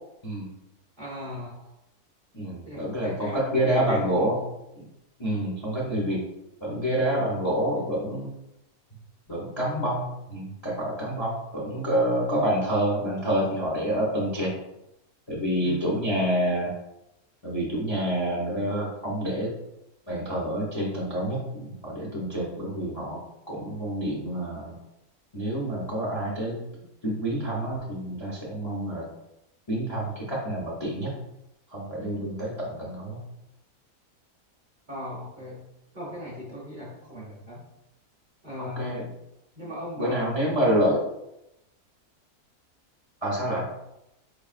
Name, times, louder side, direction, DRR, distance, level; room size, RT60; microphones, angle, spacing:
voice 1, 1.0-1.7 2.6-4.3 7.5-7.6 15.6-15.9 34.9-35.7 35.9-37.6 38.4-38.9 39.5-40.3, left 1 dB, 35° right, -5 dB, 0.9 m, -37 dB
voice 2, 2.3-4.4 4.7-4.9 5.2-6.2 6.6-8.3 9.3-14.6 15.3-16.7 17.4-19.5 20.1-23.2 23.5-24.7 25.3-26.6 27.0-29.0 29.7-31.1 31.7-33.2 38.6-39.0 40.0-41.0 43.2-43.7, right 1 dB, 25° left, -5 dB, 0.7 m, -27 dB
4.7 x 3.2 x 2.5 m, 0.86 s
omnidirectional pair, 1.6 m